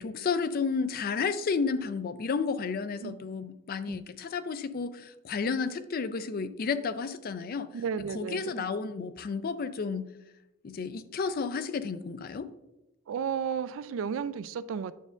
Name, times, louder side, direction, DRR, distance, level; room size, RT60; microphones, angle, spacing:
voice 1, 0.0-7.7 8.1-10.1 10.6-12.5, left 5 dB, 45° left, 0.4 m, -32 dB
voice 2, 7.7-8.6 13.1-14.9, right 7 dB, 65° right, 0.3 m, -33 dB
9.3 x 6.2 x 2.5 m
head